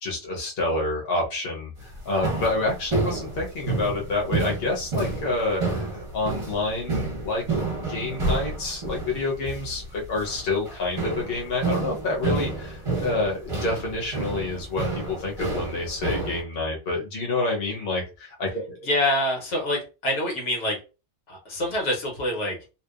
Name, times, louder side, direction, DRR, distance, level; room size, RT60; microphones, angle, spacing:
voice 1, 0.0-7.4 7.9-18.9, left 2 dB, 60° left, -1 dB, 1.0 m, -28 dB
sound 1, 1.8-16.4, right 3 dB, 30° right, 0.9 m, -30 dB
voice 2, 18.8-20.8 21.3-22.6, left 1 dB, 80° left, 0 dB, 1.2 m, -26 dB
2.7 x 2.2 x 2.3 m, 0.31 s
omnidirectional pair, 1.2 m